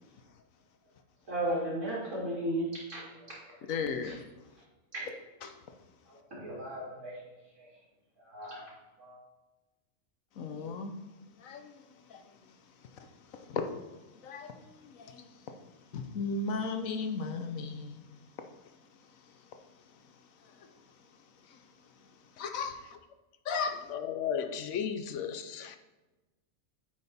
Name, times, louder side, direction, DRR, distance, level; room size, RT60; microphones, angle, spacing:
voice 1, 1.3-3.6 4.0-4.1 4.9-5.1 6.1-7.1 7.6-7.7 8.2-8.6 9.0-9.2, right 1 dB, 70° right, 2.5 m, -35 dB
voice 2, 3.7-4.2 5.4-5.5 10.4-11.0 11.4-11.8 12.1-12.2 13.3-13.7 14.2-15.2 15.9-18.0 21.5-21.6 22.4-22.8 23.4-23.8, left 4 dB, 85° left, 1.3 m, -35 dB
voice 3, 23.9-25.8, left 8 dB, 70° left, 1.0 m, -34 dB
8.7 x 5.1 x 4.2 m
omnidirectional pair, 1.4 m